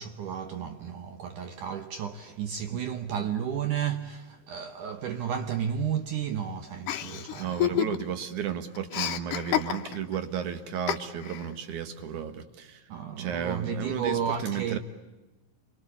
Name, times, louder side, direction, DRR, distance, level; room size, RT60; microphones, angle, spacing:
voice 1, 0.0-7.8 12.9-14.8, right 8 dB, 75° right, 1.9 m, -32 dB
Chuckle chortle, 6.9-8.2 8.5-10.2 10.9-11.5, left 12 dB, 65° left, 2.2 m, -29 dB
voice 2, 7.4-12.8 13.2-14.8, right 8 dB, 55° right, 2.4 m, -33 dB
27.5 x 24.5 x 8.6 m
omnidirectional pair, 5.1 m